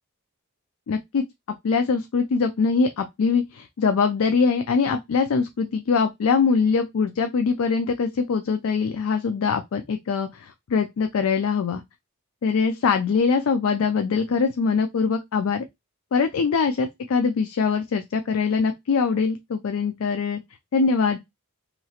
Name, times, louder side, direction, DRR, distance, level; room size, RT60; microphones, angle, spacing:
voice 1, 0.9-1.2 1.6-11.8 12.4-15.6 16.1-20.4 20.7-21.2, left 5 dB, 70° left, 0.4 m, -23 dB
2.9 x 2.3 x 2.8 m
head